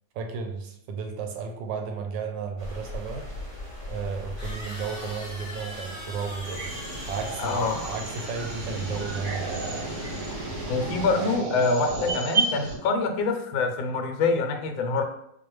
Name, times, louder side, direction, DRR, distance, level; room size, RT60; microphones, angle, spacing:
voice 1, 0.1-3.2 3.9-6.7 7.1-7.6 7.9-9.7, right 5 dB, 75° right, 4 dB, 1.2 m, -33 dB
sound 1, 2.6-11.4, left 1 dB, 30° right, 0.5 m, -41 dB
sound 2, 4.4-10.5, left 1 dB, 35° left, 0.7 m, -43 dB
sound 3, 6.4-12.8, right 3 dB, 60° right, 1.0 m, -31 dB
voice 2, 7.4-7.8 10.7-15.0, left 4 dB, 80° left, 5 dB, 1.3 m, -25 dB
4.5 x 2.3 x 3.1 m, 0.76 s
omnidirectional pair, 2.1 m